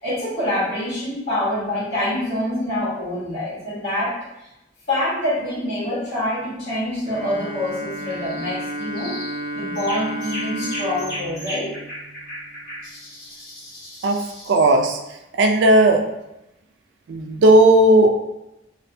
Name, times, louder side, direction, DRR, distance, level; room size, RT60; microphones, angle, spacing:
voice 1, 0.0-4.5 4.9-9.2 9.5-11.8, left 1 dB, 70° left, -9 dB, 1.3 m, -26 dB
Bowed string instrument, 7.0-12.7, right 1 dB, 30° right, 0.6 m, -32 dB
sound 1, 8.2-8.6 8.9-9.4 9.7-14.7, equal, 55° left, 1.4 m, -36 dB
voice 2, 14.5-15.0 15.4-16.0 17.1-18.1, right 1 dB, 85° right, 3 dB, 0.4 m, -14 dB
2.6 x 2.1 x 2.6 m, 0.89 s
head